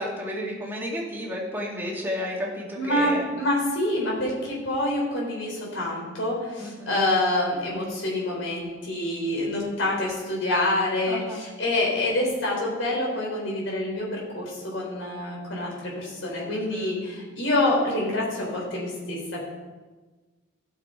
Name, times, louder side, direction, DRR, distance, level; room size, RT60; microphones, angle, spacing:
voice 1, 0.0-3.3 6.6-7.0 11.1-11.4 16.5-17.1, equal, 10° right, -3 dB, 2.1 m, -32 dB
voice 2, 2.8-19.4, left 1 dB, 75° left, -2 dB, 4.0 m, -27 dB
15.0 x 6.8 x 4.4 m, 1.3 s
head